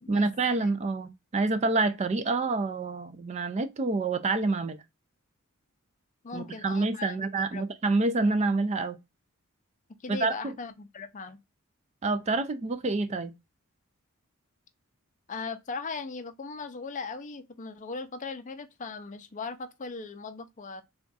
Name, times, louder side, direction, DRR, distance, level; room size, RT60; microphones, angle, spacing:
voice 1, 0.1-4.8 6.3-9.0 10.1-10.5 12.0-13.3, right 3 dB, 30° right, 0.4 m, -27 dB
voice 2, 6.2-7.7 10.0-11.4 15.3-20.8, left 4 dB, 35° left, 0.5 m, -38 dB
3.5 x 2.4 x 3.8 m
head